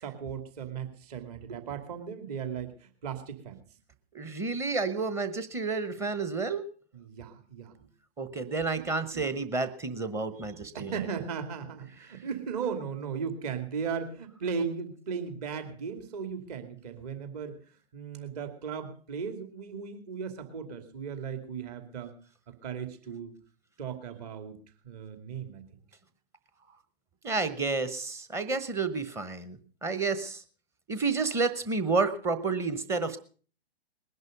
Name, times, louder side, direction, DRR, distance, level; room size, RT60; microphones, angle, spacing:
voice 1, 0.0-3.6 6.9-7.9 8.5-8.7 9.1-9.2 10.6-17.6 17.9-22.1 22.6-23.3 23.8-24.6 24.8-25.6, right 6 dB, 35° right, 7 dB, 2.5 m, -37 dB
voice 2, 4.1-6.6 8.2-11.1 12.1-12.2 27.2-30.4 30.9-33.2, right 4 dB, 10° right, 12 dB, 0.9 m, -30 dB
20.5 x 11.0 x 5.2 m, 0.42 s
figure-of-eight pair, 125°, 32 cm